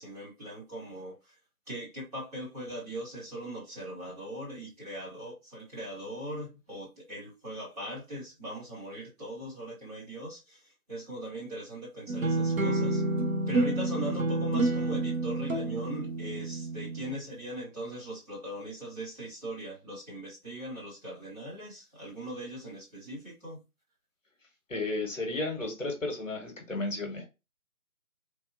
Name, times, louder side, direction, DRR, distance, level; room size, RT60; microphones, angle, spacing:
voice 1, 0.0-1.3 1.7-13.0 13.5-23.6, equal, 25° right, 1.6 m, -40 dB
sound 1, 12.1-17.1, right 2 dB, 65° right, 0.9 m, -29 dB
voice 2, 24.7-27.3, left 2 dB, 55° left, 1.0 m, -33 dB
3.4 x 2.2 x 2.5 m
figure-of-eight pair, 160°, 45 cm